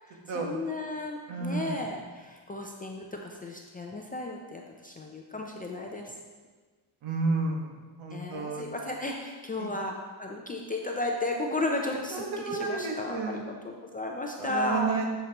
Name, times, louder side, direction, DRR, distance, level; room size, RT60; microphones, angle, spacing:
voice 1, 0.3-6.0 8.1-9.9 10.2-14.9, left 2 dB, 20° left, 0 dB, 0.3 m, -34 dB
voice 2, 1.3-1.8 7.0-7.7 8.0-8.7 9.6-9.7 11.9-13.5 14.4-15.1, right 3 dB, 70° right, 1 dB, 1.4 m, -31 dB
8.3 x 7.2 x 2.9 m, 1.4 s
cardioid pair, 160°, 49 cm